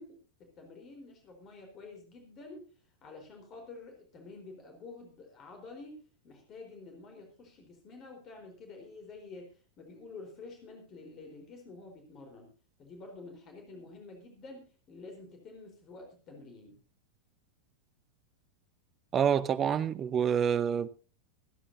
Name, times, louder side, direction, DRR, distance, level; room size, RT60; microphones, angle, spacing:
voice 1, 0.0-2.7 3.0-12.5 12.8-16.8, left 3 dB, 30° left, 4.1 m, -49 dB
voice 2, 19.1-20.9, right 8 dB, 25° right, 0.9 m, -27 dB
25.5 x 10.0 x 2.7 m
figure-of-eight pair, 90°, 0 cm